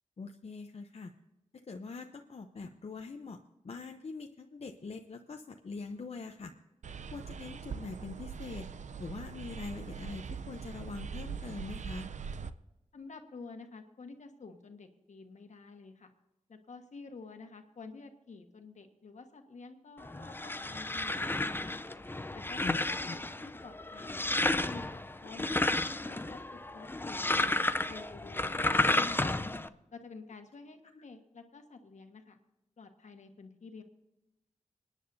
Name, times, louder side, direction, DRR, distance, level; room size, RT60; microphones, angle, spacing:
voice 1, 0.2-1.1 1.5-3.4 3.6-6.5 7.1-8.7 9.0-12.1 22.6-22.8 23.0-23.1, left 4 dB, 55° left, 4 dB, 0.7 m, -43 dB
sound 1, 6.8-12.5, right 6 dB, 75° right, 0.5 m, -42 dB
voice 2, 12.9-16.1 16.5-21.7 22.3-25.5 26.0-29.4 29.9-32.4 32.8-33.8, left 4 dB, 75° left, 5 dB, 1.4 m, -50 dB
sound 2, 20.0-29.7, left 2 dB, 15° left, 0.5 m, -32 dB
26.0 x 9.9 x 2.7 m, 0.97 s
wide cardioid pair, 65°, 12 cm